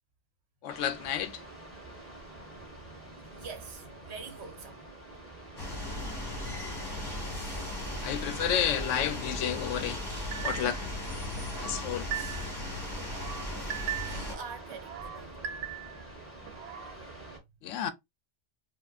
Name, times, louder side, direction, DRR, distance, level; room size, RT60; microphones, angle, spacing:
voice 1, 0.6-1.4 8.0-10.0 10.4-10.8 11.6-12.1 17.6-17.9, left 9 dB, 90° left, 0.9 m, -31 dB
sound 1, 0.7-17.4, right 2 dB, 10° right, 1.7 m, -47 dB
voice 2, 3.2-4.9 5.8-6.1 9.6-9.7 11.2-11.4 13.8-15.4 16.7-17.2, right 5 dB, 65° right, 1.1 m, -46 dB
sound 2, 5.6-14.4, left 1 dB, 20° left, 1.2 m, -37 dB
sound 3, 10.3-10.9 11.4-12.6 13.0-14.3 14.7-16.1 16.5-17.0, right 11 dB, 90° right, 1.0 m, -39 dB
4.4 x 2.4 x 2.4 m
omnidirectional pair, 1.3 m